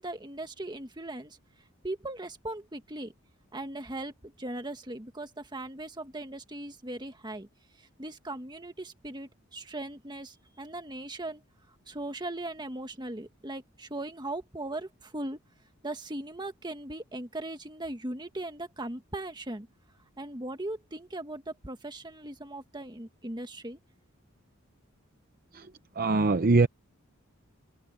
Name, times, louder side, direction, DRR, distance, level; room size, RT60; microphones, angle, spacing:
voice 1, 0.0-1.4 1.8-3.1 3.5-7.5 7.8-11.4 11.9-15.4 15.8-19.7 20.2-23.8, right 1 dB, 20° right, 1.6 m, -39 dB
voice 2, 25.5-26.7, right 3 dB, 45° right, 0.6 m, -24 dB
head